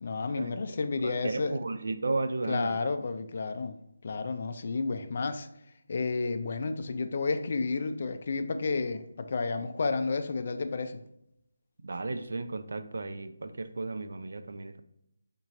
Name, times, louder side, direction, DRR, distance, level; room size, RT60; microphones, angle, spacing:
voice 1, 0.0-1.6 2.5-3.8 4.0-5.5 5.9-11.0, left 4 dB, 45° left, 9 dB, 0.3 m, -31 dB
voice 2, 1.0-2.8 11.8-14.8, right 3 dB, 60° right, 10 dB, 0.3 m, -34 dB
3.6 x 2.9 x 3.9 m, 0.78 s
figure-of-eight pair, 155°, 0 cm